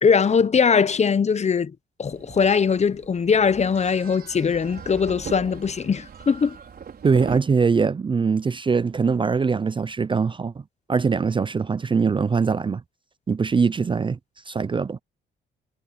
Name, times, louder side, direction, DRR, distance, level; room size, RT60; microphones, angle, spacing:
voice 1, 0.0-6.6, left 6 dB, 35° left, 0.9 m, -21 dB
sound 1, 2.1-7.4, right 7 dB, 50° right, 5.6 m, -39 dB
voice 2, 7.0-10.6 10.9-12.8 13.3-14.2 14.5-15.0, right 5 dB, 25° right, 0.5 m, -22 dB
cardioid pair, 90°, 20 cm